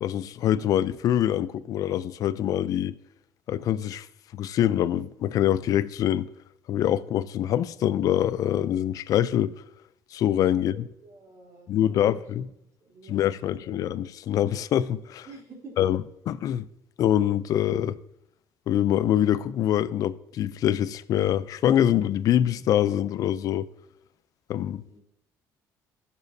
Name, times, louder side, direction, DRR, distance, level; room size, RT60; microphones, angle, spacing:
voice 1, 0.0-3.0 3.5-4.1 4.3-6.3 6.7-9.5 10.1-10.7 11.7-12.5 13.1-15.3 15.8-16.0 16.3-16.7 17.0-18.0 18.7-23.7 24.5-24.8, left 11 dB, 60° left, 0.4 m, -24 dB
voice 2, 10.5-12.5 12.8-13.9 15.2-15.8 24.8-25.0, right 3 dB, 50° right, 3.4 m, -49 dB
14.5 x 7.1 x 2.7 m
cardioid pair, 110°, 7 cm